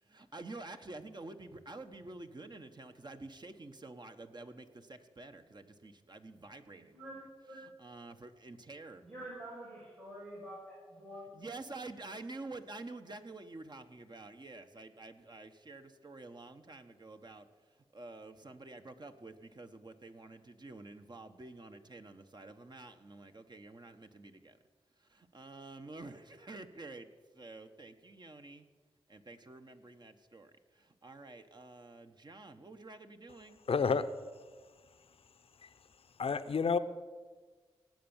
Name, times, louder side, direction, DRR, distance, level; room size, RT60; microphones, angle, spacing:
voice 1, 0.0-9.1 11.3-24.6 25.0-27.1 27.3-28.7 29.1-33.6, right 2 dB, 40° right, 7 dB, 1.2 m, -49 dB
voice 2, 6.9-7.6 9.0-11.3, right 1 dB, 75° right, -7 dB, 4.8 m, -47 dB
voice 3, 33.7-34.1 35.6-35.7 36.2-36.8, left 5 dB, 60° left, 12 dB, 0.8 m, -29 dB
18.0 x 7.9 x 7.3 m, 1.4 s
cardioid pair, 50°, 11 cm